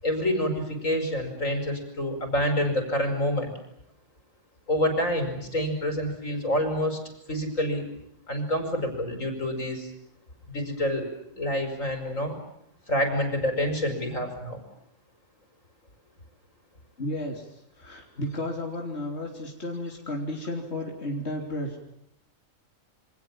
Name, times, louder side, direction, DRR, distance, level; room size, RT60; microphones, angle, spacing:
voice 1, 0.0-3.5 4.7-7.0 7.3-7.8 8.3-9.9 10.5-11.1 11.4-12.4 12.9-14.6, left 1 dB, 85° left, 6 dB, 5.8 m, -27 dB
voice 2, 17.0-21.8, left 1 dB, 55° left, 1 dB, 3.6 m, -33 dB
28.0 x 25.5 x 7.4 m, 0.76 s
omnidirectional pair, 1.3 m